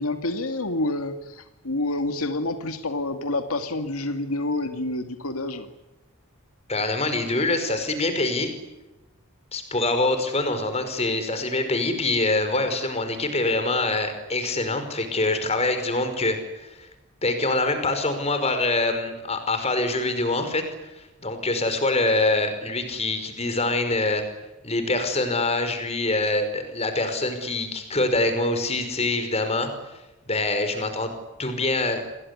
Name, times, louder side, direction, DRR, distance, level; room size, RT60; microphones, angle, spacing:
voice 1, 0.0-5.7, left 2 dB, 90° left, 7 dB, 2.3 m, -28 dB
voice 2, 6.7-8.5 9.5-16.9 17.2-20.6 20.9-24.2 24.6-29.7 30.3-31.1 31.4-32.0, left 2 dB, 30° left, 8 dB, 5.3 m, -25 dB
28.5 x 21.5 x 9.8 m, 1.0 s
head